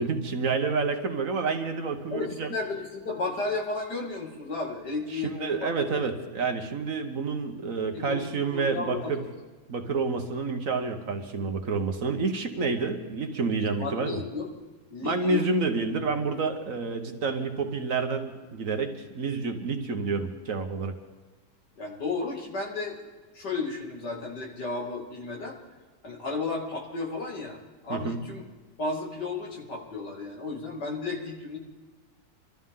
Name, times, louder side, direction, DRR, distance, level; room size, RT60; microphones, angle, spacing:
voice 1, 0.0-2.6 5.1-9.2 9.7-14.2 15.0-20.9 27.9-28.2, right 4 dB, 55° right, 6 dB, 1.4 m, -29 dB
voice 2, 2.1-6.0 7.9-9.3 13.8-14.5 14.9-15.4 21.8-23.0 23.3-25.6 26.0-27.6 27.8-28.4 28.8-31.6, left 3 dB, 80° left, -1 dB, 3.1 m, -33 dB
25.0 x 13.5 x 3.7 m, 1.3 s
omnidirectional pair, 1.8 m